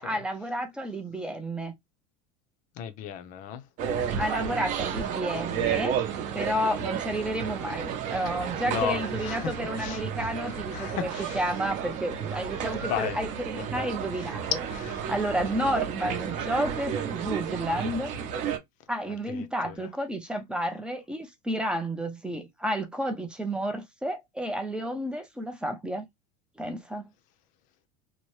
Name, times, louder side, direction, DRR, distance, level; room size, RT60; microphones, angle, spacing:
voice 1, 0.0-1.7 4.2-6.0 6.3-14.4 15.1-18.1 18.9-26.1 26.6-27.1, right 1 dB, 5° right, 0.4 m, -31 dB
voice 2, 2.8-3.6 8.7-11.4 12.9-13.2 13.6-13.9 14.7-15.0 19.3-19.8, left 9 dB, 45° left, 0.5 m, -35 dB
sound 1, 3.8-18.6, right 8 dB, 40° right, 0.7 m, -32 dB
2.8 x 2.1 x 3.0 m
supercardioid pair, 155°, 19 cm